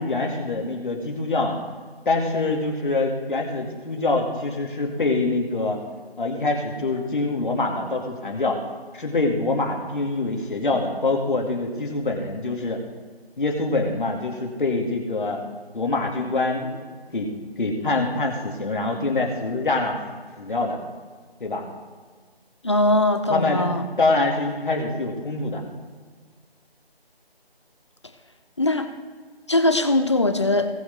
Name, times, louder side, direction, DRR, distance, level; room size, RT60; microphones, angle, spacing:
voice 1, 0.0-1.6 2.1-5.8 6.2-8.6 8.9-12.8 13.4-15.4 15.7-17.3 17.6-20.0 20.4-20.8 21.4-21.6 23.3-23.7 24.0-25.6, left 2 dB, 50° left, 1 dB, 2.4 m, -25 dB
voice 2, 22.6-23.8 28.6-28.9 29.5-30.7, left 2 dB, 30° left, 8 dB, 0.6 m, -20 dB
20.0 x 7.1 x 3.6 m, 1.5 s
figure-of-eight pair, 160°, 31 cm